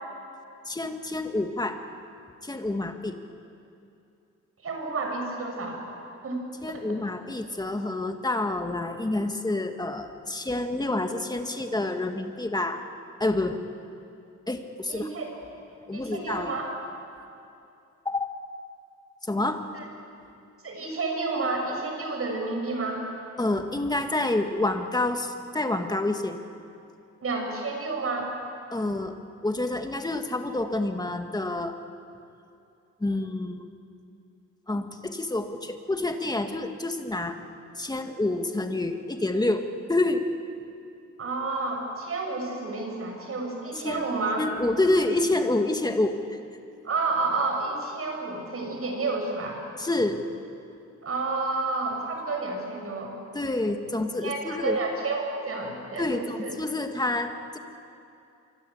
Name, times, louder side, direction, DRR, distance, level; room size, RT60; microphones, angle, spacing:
voice 1, 0.7-1.8 2.4-3.2 6.6-12.8 13.2-13.6 14.5-15.1 15.9-16.5 18.1-18.3 19.2-19.6 23.4-26.4 28.7-29.2 29.4-31.7 33.0-33.7 34.7-37.4 37.8-39.6 39.9-40.2 43.8-44.1 44.4-46.4 49.8-50.2 53.3-54.8 56.0-57.6, left 2 dB, 15° left, 6 dB, 1.9 m, -28 dB
voice 2, 4.6-5.8 6.2-6.4 14.9-15.3 15.9-16.7 19.7-19.8 20.6-23.0 27.2-28.3 41.2-44.5 46.8-49.6 51.0-53.1 54.2-56.5, right 3 dB, 50° right, 2 dB, 6.9 m, -30 dB
26.5 x 24.5 x 8.5 m, 2.6 s
cardioid pair, 110°, 30 cm